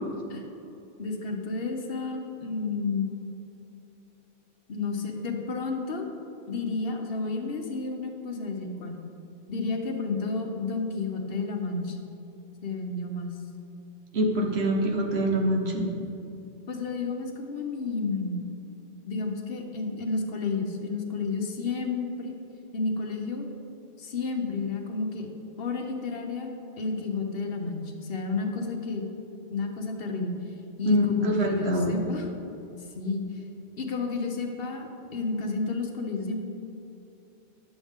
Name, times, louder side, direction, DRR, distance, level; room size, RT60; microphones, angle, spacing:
voice 1, 1.0-3.1 4.7-6.1 6.5-9.0 9.5-12.0 12.6-13.3 16.7-18.5 19.0-22.3 22.7-23.5 24.0-25.3 25.6-29.0 29.5-30.3 30.8-32.3 32.9-33.2 33.8-36.4, left 4 dB, 65° left, 3 dB, 1.1 m, -31 dB
voice 2, 14.1-15.9 30.9-31.9, right 1 dB, 75° right, 1 dB, 1.2 m, -25 dB
10.0 x 7.1 x 3.6 m, 2.9 s
omnidirectional pair, 1.1 m